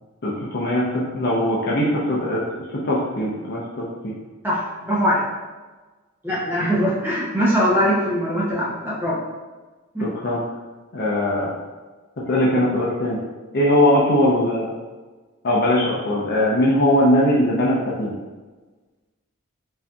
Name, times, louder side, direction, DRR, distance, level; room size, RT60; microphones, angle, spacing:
voice 1, 0.2-2.4 2.7-4.1 10.0-10.4 10.9-11.5 12.3-13.2 13.5-14.7 15.4-18.1, left 1 dB, 50° left, -5 dB, 0.6 m, -20 dB
voice 2, 4.4-5.3 6.2-9.2 9.9-10.1, equal, 10° right, -7 dB, 0.6 m, -21 dB
5.3 x 2.7 x 2.3 m, 1.3 s
head